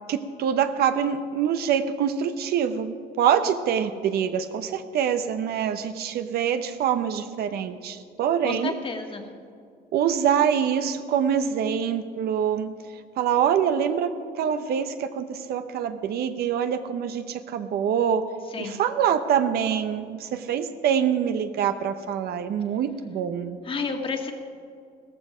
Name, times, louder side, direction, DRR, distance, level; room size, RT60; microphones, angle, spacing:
voice 1, 0.1-8.8 9.9-12.7 13.2-18.3 18.6-23.6, right 8 dB, 70° right, 9 dB, 0.9 m, -25 dB
voice 2, 8.4-9.2 18.5-18.8 23.7-24.3, left 4 dB, 30° left, 4 dB, 1.7 m, -31 dB
16.0 x 14.0 x 5.1 m, 2.3 s
cardioid pair, 110°, 17 cm